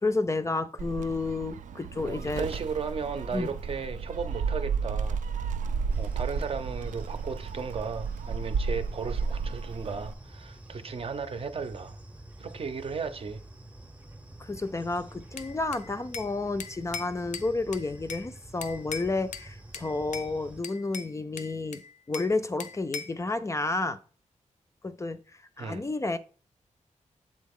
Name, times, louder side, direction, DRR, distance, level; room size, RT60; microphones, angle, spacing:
voice 1, 0.0-2.5 3.3-3.5 14.4-21.8 22.1-24.0 24.8-25.2 25.6-26.2, left 3 dB, 25° left, 0.4 m, -31 dB
Gull seagull, 0.8-10.1, right 5 dB, 90° right, 0.4 m, -33 dB
voice 2, 2.0-5.2 6.0-12.0 12.4-13.4 25.6-25.8, right 5 dB, 50° right, 0.6 m, -35 dB
sound 1, 5.9-20.6, right 1 dB, 10° right, 0.7 m, -48 dB
Bell / Glass, 15.4-16.3 16.6-18.3 18.6-19.5 19.7-20.3 20.6-22.3 22.6-23.2, left 6 dB, 80° left, 0.5 m, -40 dB
7.4 x 3.9 x 3.6 m
wide cardioid pair, 110°, 13 cm